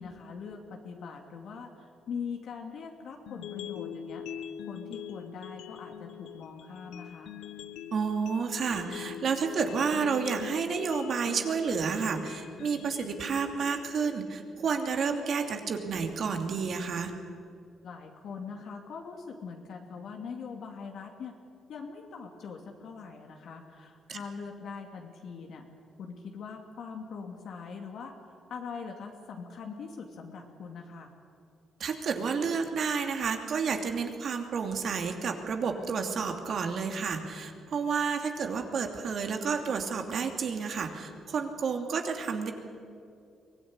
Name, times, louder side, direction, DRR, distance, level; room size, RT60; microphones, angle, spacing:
voice 1, 0.0-4.2 4.7-7.3 17.8-21.3 21.7-25.6 26.0-28.1 28.5-31.1, left 5 dB, 70° left, 2 dB, 2.6 m, -42 dB
sound 1, 3.3-15.3, left 8 dB, 85° left, 1.0 m, -43 dB
voice 2, 7.9-17.1 24.1-24.2 31.8-42.5, right 5 dB, 55° right, 5 dB, 2.8 m, -30 dB
23.5 x 17.0 x 9.8 m, 2.5 s
cardioid pair, 90°, 0 cm